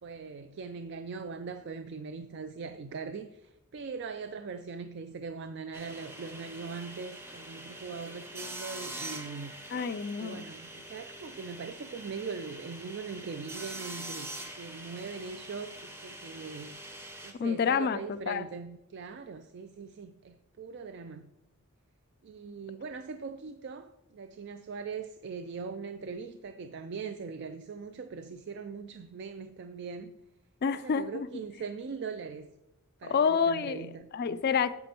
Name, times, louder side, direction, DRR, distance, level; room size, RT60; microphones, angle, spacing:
voice 1, 0.0-9.5 10.2-16.8 17.2-21.3 22.2-30.1 30.7-32.5 33.0-34.1, right 5 dB, 50° right, 0.3 m, -41 dB
sound 1, 5.7-17.3, right 1 dB, 10° right, 0.6 m, -44 dB
voice 2, 9.7-10.4 17.4-18.4 30.6-31.3 33.1-33.9 34.1-34.8, left 6 dB, 45° left, 0.3 m, -28 dB
8.3 x 7.6 x 2.9 m
head